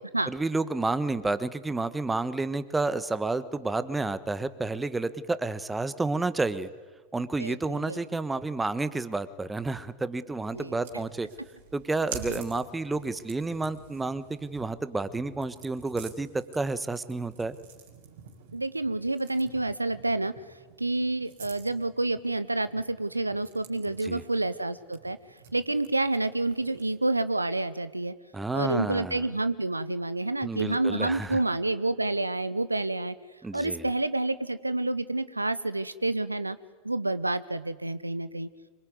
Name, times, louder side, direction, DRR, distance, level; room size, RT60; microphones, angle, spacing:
voice 1, 0.3-6.7 7.1-11.3 11.7-17.5 23.8-24.2 28.3-29.3 30.4-31.4 33.4-33.8, right 3 dB, 10° right, 14 dB, 1.4 m, -30 dB
voice 2, 7.4-8.0 10.5-10.7 12.2-12.4 18.5-20.3 20.8-25.2 25.5-28.1 28.5-33.1 33.5-36.6 36.8-38.5, right 2 dB, 85° right, 15 dB, 0.9 m, -29 dB
sound 1, 10.4-27.0, right 6 dB, 60° right, 4.5 m, -49 dB
26.0 x 23.5 x 9.5 m, 1.4 s
figure-of-eight pair, 90°, 0 cm